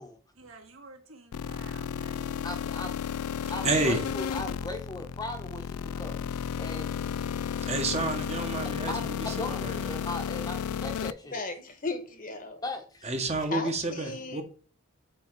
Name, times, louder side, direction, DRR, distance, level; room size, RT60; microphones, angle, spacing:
voice 1, 0.4-2.3, right 3 dB, 65° right, 2.0 m, -51 dB
sound 1, 1.3-11.1, left 8 dB, 85° left, 0.4 m, -33 dB
voice 2, 2.4-3.0 3.5-6.2 6.6-6.9 8.9-11.4 12.6-13.1, left 2 dB, 15° left, 1.0 m, -38 dB
voice 3, 3.6-4.0 7.7-9.9 13.0-14.4, right 2 dB, 30° right, 1.1 m, -30 dB
voice 4, 11.3-12.6 13.5-14.4, left 3 dB, 40° left, 1.2 m, -36 dB
5.4 x 4.8 x 6.0 m
head